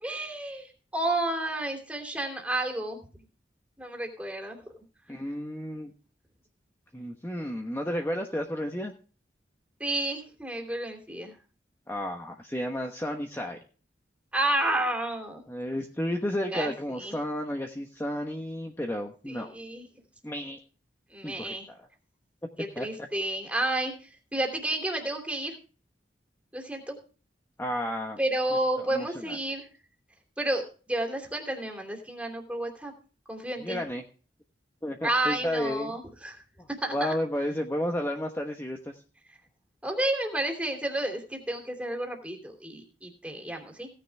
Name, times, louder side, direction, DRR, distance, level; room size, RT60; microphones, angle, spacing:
voice 1, 0.0-3.1 3.8-4.6 9.8-11.3 14.3-15.4 16.5-16.7 17.0-17.1 19.3-19.9 21.1-21.7 22.6-23.9 24.3-25.5 26.5-27.0 28.2-29.7 30.4-32.9 33.3-33.8 35.0-36.4 36.8-37.2 39.8-43.9, right 1 dB, 5° right, 3 dB, 2.9 m, -31 dB
voice 2, 5.1-5.9 6.9-8.9 11.9-13.6 15.5-19.5 20.2-20.6 21.2-21.9 22.8-23.1 27.6-28.2 28.8-29.4 33.6-34.0 34.8-35.9 36.6-39.0, equal, 15° left, 3 dB, 1.2 m, -32 dB
17.0 x 9.9 x 3.5 m, 0.37 s
head